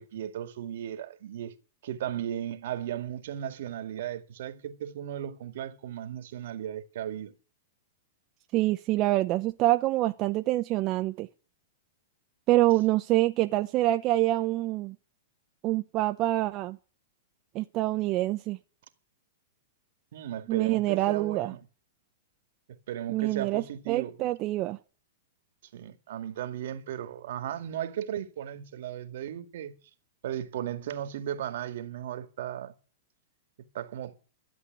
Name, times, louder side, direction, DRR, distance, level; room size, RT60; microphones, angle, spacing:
voice 1, 0.0-1.5 1.8-7.3 20.1-21.6 22.9-24.1 25.7-29.7 30.2-32.7 33.7-34.2, right 10 dB, 65° right, 2.1 m, -36 dB
voice 2, 8.5-11.3 12.5-15.0 15.6-16.8 17.5-18.6 20.5-21.5 23.1-24.8, right 16 dB, 35° right, 0.8 m, -26 dB
13.0 x 8.1 x 9.5 m
hypercardioid pair, 135°, 0 cm